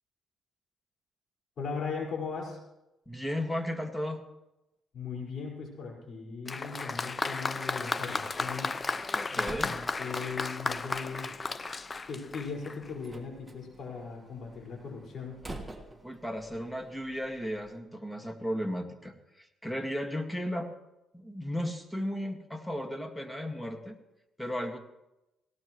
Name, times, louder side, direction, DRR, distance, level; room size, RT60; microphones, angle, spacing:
voice 1, 1.6-2.6 4.9-8.7 9.3-11.3 12.1-15.4, left 5 dB, 60° left, -1 dB, 5.1 m, -38 dB
voice 2, 3.1-4.2 9.1-9.8 16.0-20.7 21.1-24.0 24.4-24.8, equal, 5° left, 5 dB, 1.8 m, -35 dB
Applause, 6.5-12.9, left 3 dB, 30° left, 0.6 m, -34 dB
Slam, 8.3-17.8, right 2 dB, 10° right, 1.6 m, -49 dB
18.5 x 17.5 x 3.1 m, 0.93 s
cardioid pair, 90°, 0 cm